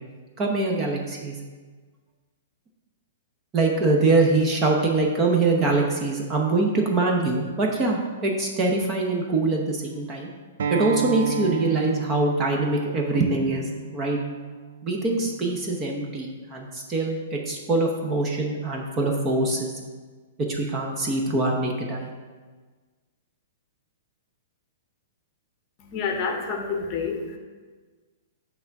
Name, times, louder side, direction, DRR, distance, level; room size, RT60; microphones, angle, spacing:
voice 1, 0.4-1.4 3.5-10.3 10.7-13.6 13.9-14.2 14.8-19.7 20.5-22.1, right 2 dB, 20° right, 0 dB, 0.7 m, -24 dB
Acoustic guitar, 10.6-15.8, right 5 dB, 75° right, 0.4 m, -32 dB
voice 2, 25.8-27.4, left 5 dB, 30° left, 3 dB, 0.8 m, -28 dB
8.3 x 3.4 x 5.8 m, 1.4 s
hypercardioid pair, 170°, 0 cm